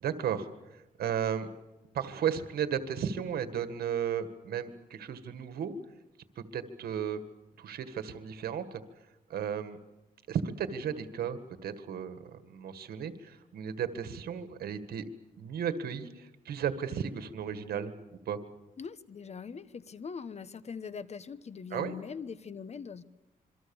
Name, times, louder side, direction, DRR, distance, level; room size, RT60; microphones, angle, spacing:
voice 1, 0.0-1.5 1.9-5.7 6.4-7.2 7.6-8.8 9.3-9.8 10.3-15.0 15.4-17.9 18.3-18.4 21.7-21.9, right 8 dB, 85° right, 10 dB, 1.9 m, -34 dB
voice 2, 18.8-23.0, left 6 dB, 45° left, 15 dB, 1.1 m, -42 dB
27.0 x 23.5 x 7.2 m, 0.98 s
cardioid pair, 90°, 15 cm